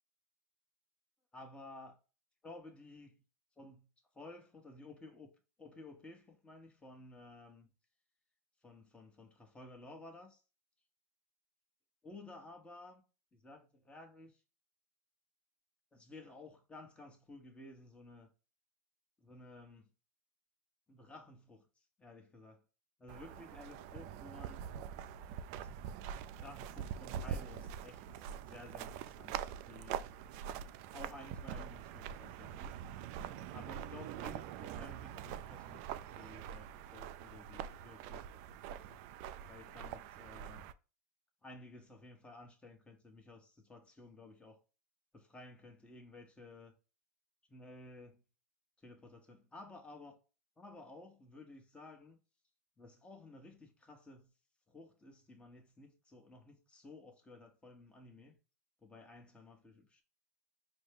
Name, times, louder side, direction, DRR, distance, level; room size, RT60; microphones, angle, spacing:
voice 1, 1.3-2.0 2.4-3.2 3.6-3.9 4.1-5.3 5.6-7.7 8.6-10.4 12.0-13.0 13.3-14.4 15.9-18.3 19.2-19.9 20.9-21.7 22.0-22.6 23.0-24.7 25.5-25.7 26.4-29.3 29.7-30.1 30.9-32.8 33.5-35.8 36.1-38.2 38.7-38.8 39.5-40.6 41.4-44.6 45.1-46.8 47.5-48.2 48.8-50.2 50.6-52.2 52.8-54.3 54.7-58.4 58.8-60.0, left 2 dB, 10° left, 1.0 m, -54 dB
sound 1, 23.1-40.7, right 9 dB, 55° right, 0.4 m, -44 dB
5.3 x 2.2 x 3.4 m
hypercardioid pair, 100°, 9 cm